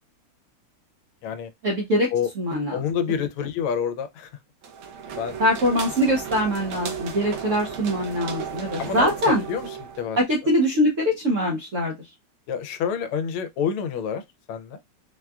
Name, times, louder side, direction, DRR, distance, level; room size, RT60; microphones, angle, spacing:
voice 1, 1.6-2.1 2.4-2.8 5.4-9.4 10.2-11.9, equal, 65° right, 0.7 m, -23 dB
voice 2, 2.7-4.3 5.2-5.4 8.8-9.7 10.0-10.2 12.5-14.2 14.5-14.8, left 7 dB, 80° left, 1.4 m, -27 dB
sound 1, 4.6-10.1, right 6 dB, 90° right, 1.7 m, -34 dB
4.3 x 2.3 x 2.2 m
omnidirectional pair, 2.3 m